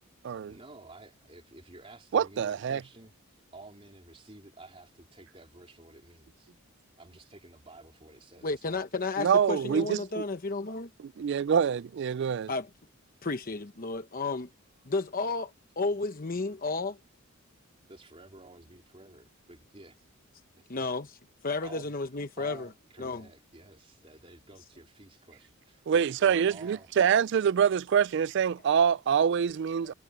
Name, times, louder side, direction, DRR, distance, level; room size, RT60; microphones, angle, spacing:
voice 1, 0.5-3.1 3.5-6.5 7.0-8.8 17.9-20.1 20.6-20.8 21.6-21.9 22.4-26.9, right 2 dB, 25° right, 3.6 m, -51 dB
voice 2, 2.1-2.8 9.2-10.2 11.2-12.5 25.9-29.9, right 7 dB, 55° right, 0.3 m, -25 dB
voice 3, 8.4-10.9 12.5-12.7 13.2-14.5 14.8-17.0 20.7-21.2 21.4-22.7 23.0-23.3, left 3 dB, 40° left, 0.9 m, -32 dB
head